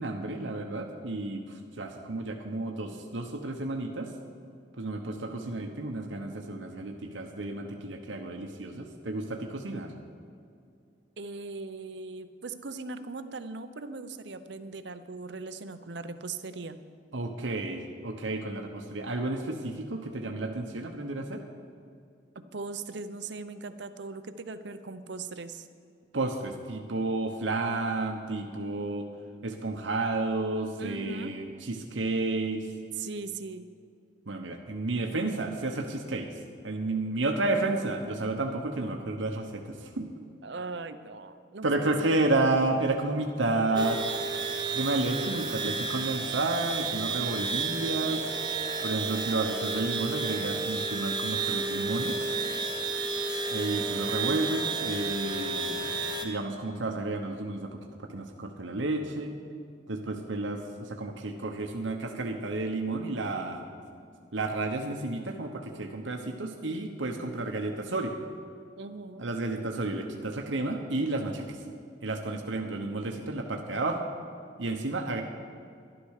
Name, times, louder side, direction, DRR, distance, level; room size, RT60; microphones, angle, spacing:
voice 1, 0.0-1.4 1.8-4.1 4.8-9.9 17.1-21.4 26.1-29.1 29.4-32.6 34.3-36.3 36.6-40.1 41.6-44.0 44.7-48.2 48.8-52.2 53.5-55.9 56.2-59.3 59.9-63.6 64.3-68.1 69.2-71.6 72.0-74.0 74.6-75.2, right 2 dB, 85° right, 2 dB, 1.1 m, -31 dB
voice 2, 11.2-16.8 22.3-25.7 30.8-31.4 33.0-33.7 40.4-42.2 68.8-69.3, right 3 dB, 65° right, 11 dB, 0.7 m, -39 dB
sound 1, 43.8-56.3, right 4 dB, 25° right, 1.0 m, -31 dB
12.0 x 11.5 x 6.5 m, 2.4 s
head